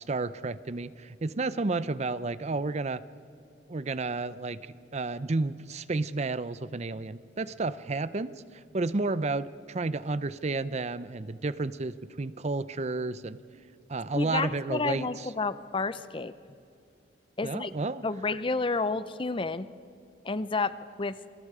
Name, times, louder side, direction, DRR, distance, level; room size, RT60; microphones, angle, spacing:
voice 1, 0.0-3.0 3.7-8.4 8.7-13.4 13.9-15.3 17.4-18.0, right 3 dB, 40° right, 16 dB, 0.6 m, -31 dB
voice 2, 14.1-16.3 17.4-17.7 18.0-19.7 20.2-21.2, left 3 dB, 30° left, 14 dB, 0.6 m, -30 dB
28.0 x 23.0 x 4.9 m, 2.5 s
head